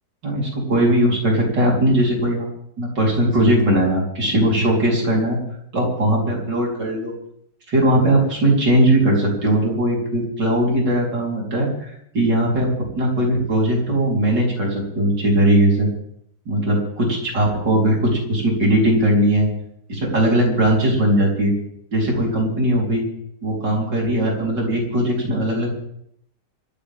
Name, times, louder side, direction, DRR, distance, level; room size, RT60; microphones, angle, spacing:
voice 1, 0.2-2.5 2.8-5.4 5.7-7.1 7.7-12.7 13.0-15.9 16.5-19.5 19.9-21.5 21.9-23.0 23.4-25.8, right 1 dB, 70° right, -2 dB, 4.9 m, -19 dB
24.5 x 14.0 x 3.7 m, 0.71 s
omnidirectional pair, 1.9 m